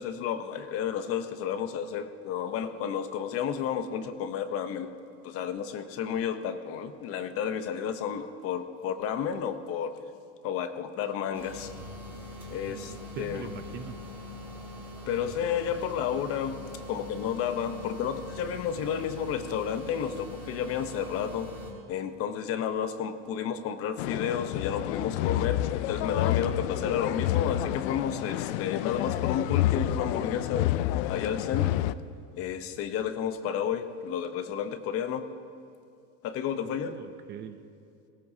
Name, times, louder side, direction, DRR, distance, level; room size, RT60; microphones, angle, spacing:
voice 1, 0.0-4.9 5.2-9.9 10.4-11.7 12.5-13.5 15.1-16.6 16.9-21.5 21.9-30.7 31.1-31.8 32.4-35.3 36.2-37.0, left 8 dB, 40° left, 9 dB, 0.8 m, -31 dB
sound 1, 11.3-21.7, left 1 dB, 5° right, 2.7 m, -42 dB
voice 2, 12.7-14.0 36.6-37.6, right 9 dB, 30° right, 9 dB, 0.5 m, -42 dB
sound 2, 24.0-31.9, left 14 dB, 80° left, 0.5 m, -29 dB
18.5 x 18.0 x 2.8 m, 2.4 s
cardioid pair, 150°, 34 cm